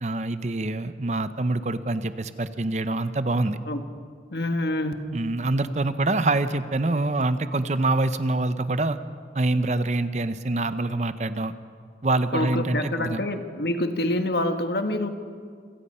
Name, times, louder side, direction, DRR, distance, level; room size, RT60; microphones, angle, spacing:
voice 1, 0.0-3.6 5.1-9.0 9.3-11.5 12.0-13.2, right 2 dB, 40° right, 12 dB, 0.7 m, -25 dB
voice 2, 4.3-4.9 12.3-15.1, left 1 dB, 70° left, 6 dB, 1.5 m, -26 dB
27.0 x 17.0 x 5.6 m, 2.1 s
head